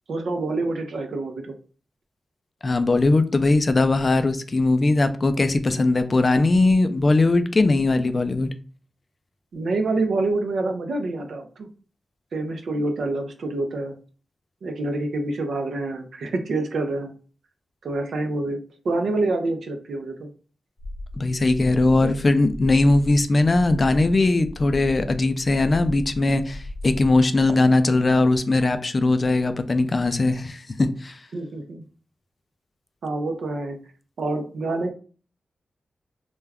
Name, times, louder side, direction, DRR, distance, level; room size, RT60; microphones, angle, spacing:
voice 1, 0.1-1.5 9.5-11.7 12.3-13.9 14.6-17.1 17.8-18.6 18.8-20.3 21.9-22.1 31.3-31.8 33.0-33.8 34.2-34.9, right 2 dB, 80° right, 0.4 m, -27 dB
voice 2, 2.6-8.5 21.2-31.2, left 2 dB, 45° left, 0.3 m, -20 dB
sound 1, 20.8-27.2, left 1 dB, 60° left, 0.7 m, -36 dB
2.2 x 2.2 x 3.4 m
cardioid pair, 60°, 0 cm